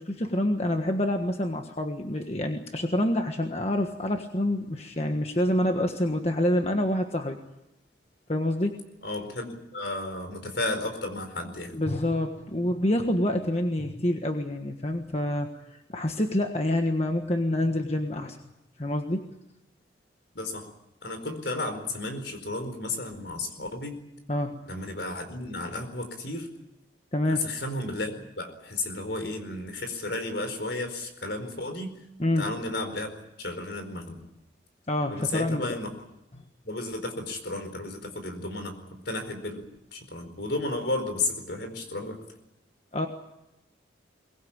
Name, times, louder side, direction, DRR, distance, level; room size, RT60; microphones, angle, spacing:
voice 1, 0.0-7.4 8.3-8.8 11.7-18.4 18.8-19.3 24.3-24.6 27.1-27.5 32.2-32.5 34.9-35.7 42.9-43.1, left 1 dB, 35° left, 4 dB, 1.4 m, -27 dB
voice 2, 9.0-11.7 20.3-20.7 21.0-24.0 24.7-26.5 27.2-31.9 32.4-34.2 35.1-35.9 36.6-39.6 39.9-42.2, left 2 dB, 65° left, 8 dB, 4.6 m, -33 dB
23.0 x 20.5 x 8.8 m, 0.93 s
head